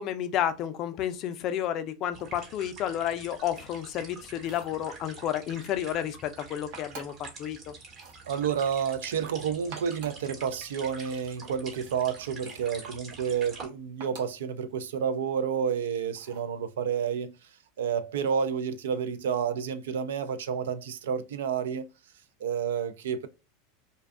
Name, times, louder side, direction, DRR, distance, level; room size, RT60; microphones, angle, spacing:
voice 1, 0.0-7.7, left 10 dB, 45° left, 0.4 m, -31 dB
sound 1, 2.1-13.7, right 4 dB, 40° right, 0.9 m, -46 dB
sound 2, 4.3-4.8 6.7-7.3 7.9-8.2 9.5-10.3 12.4-12.7 14.0-14.4 16.1-16.5, right 5 dB, 65° right, 0.8 m, -47 dB
voice 2, 8.3-17.3 17.8-21.9 22.4-23.3, right 7 dB, 85° right, 0.3 m, -30 dB
2.5 x 2.2 x 2.4 m
supercardioid pair, 115°, 0 cm